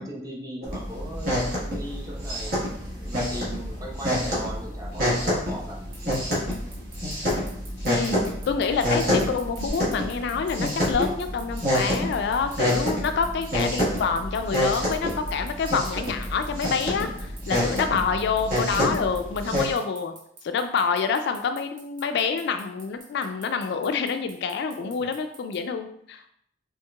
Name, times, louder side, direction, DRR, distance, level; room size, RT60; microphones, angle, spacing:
voice 1, 0.0-2.6 3.0-5.8 18.0-18.2 24.8-25.1, right 1 dB, 20° right, -2 dB, 0.8 m, -38 dB
sound 1, 0.6-19.7, equal, 55° right, 1.4 m, -27 dB
sound 2, 5.9-25.6, right 4 dB, 70° right, 0.9 m, -46 dB
voice 2, 7.9-8.2 8.5-20.1 20.4-26.3, left 5 dB, 65° left, 8 dB, 0.3 m, -27 dB
4.5 x 3.1 x 2.3 m, 0.69 s
head